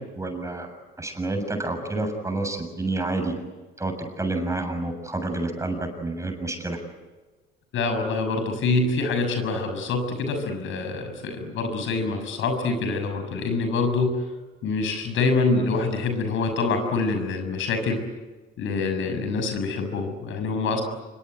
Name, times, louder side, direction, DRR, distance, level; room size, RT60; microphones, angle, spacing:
voice 1, 0.2-0.7 1.0-3.3 3.8-3.9 4.2-5.8 6.0-6.8, right 2 dB, 15° right, 5 dB, 7.0 m, -28 dB
voice 2, 7.7-14.3 14.6-18.0 18.6-20.8, left 3 dB, 70° left, 7 dB, 6.7 m, -25 dB
26.5 x 23.0 x 9.2 m, 1.2 s
cardioid pair, 95°, 21 cm